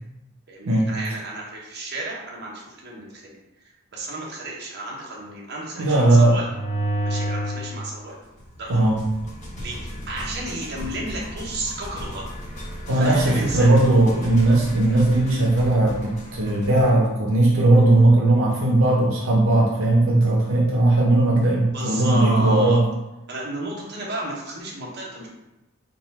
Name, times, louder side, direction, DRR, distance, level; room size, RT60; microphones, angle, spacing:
voice 1, 0.5-3.4 3.9-6.5 7.0-8.1 8.6-8.9 9.6-12.3 12.9-13.8 20.3-20.5 21.7-22.8 23.3-25.3, right 1 dB, 55° right, -4 dB, 1.0 m, -32 dB
voice 2, 5.8-6.4 8.7-9.0 12.9-22.8, right 2 dB, 85° right, -2 dB, 0.7 m, -18 dB
sound 1, 6.3-7.8 8.4-16.9, right 1 dB, 35° left, 1.0 m, -33 dB
3.9 x 2.3 x 4.1 m, 0.96 s
head